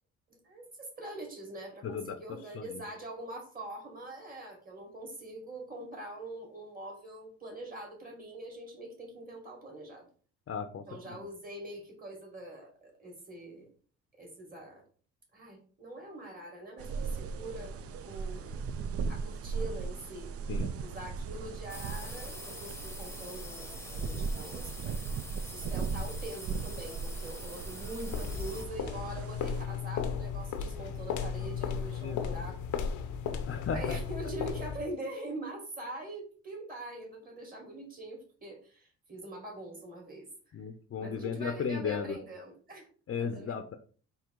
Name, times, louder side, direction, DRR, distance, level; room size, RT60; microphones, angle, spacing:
voice 1, 0.3-10.1 10.9-13.7 14.2-14.8 15.3-17.7 18.0-18.6 19.1-20.3 20.8-25.0 25.4-32.6 33.7-40.6 41.0-42.9 43.2-43.6, right 1 dB, 30° right, 0 dB, 2.1 m, -43 dB
voice 2, 1.8-2.2 2.5-2.8 10.5-11.3 20.5-20.7 32.0-32.4 33.5-34.0 40.5-42.2 43.1-43.8, left 6 dB, 45° left, 6 dB, 0.6 m, -35 dB
sound 1, 16.8-29.6, right 5 dB, 50° right, 0.5 m, -37 dB
sound 2, 21.7-28.6, left 2 dB, 10° left, 0.8 m, -46 dB
sound 3, 28.1-34.9, left 6 dB, 80° left, 0.7 m, -35 dB
3.7 x 2.8 x 4.5 m, 0.42 s
cardioid pair, 90°, 30 cm